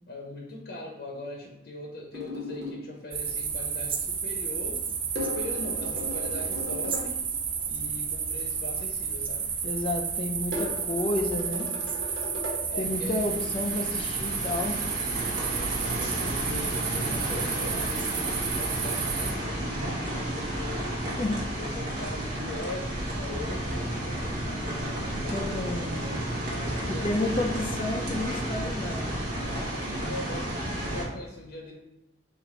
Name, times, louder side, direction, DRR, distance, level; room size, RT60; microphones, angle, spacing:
voice 1, 0.1-4.8 5.2-7.3 7.6-9.5 12.7-13.5 15.4-20.9 21.6-27.5 29.1-31.7, left 2 dB, 60° left, -1 dB, 0.8 m, -41 dB
sound 1, 2.1-2.8 5.1-7.1 10.5-12.6, left 1 dB, 75° right, 1.4 m, -36 dB
sound 2, 3.1-19.3, right 6 dB, 30° right, 0.4 m, -31 dB
voice 2, 9.6-11.7 12.8-15.0 21.2-21.4 25.3-26.1 26.9-29.2, left 2 dB, 30° left, 2 dB, 0.4 m, -31 dB
sound 3, 12.8-31.1, right 1 dB, 50° right, 1.1 m, -32 dB
4.1 x 2.5 x 4.4 m, 0.89 s
head